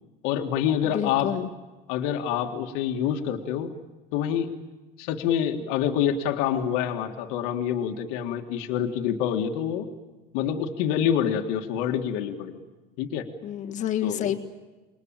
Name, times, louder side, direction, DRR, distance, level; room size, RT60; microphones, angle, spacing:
voice 1, 0.2-1.3 1.9-3.7 4.1-4.5 5.0-9.9 10.3-12.6 13.0-13.3 14.0-14.3, left 9 dB, 85° left, 4 dB, 1.9 m, -26 dB
voice 2, 0.8-1.5 13.4-14.4, left 10 dB, 35° left, 5 dB, 1.7 m, -29 dB
27.0 x 21.5 x 8.9 m, 1.2 s
cardioid pair, 180°, 21 cm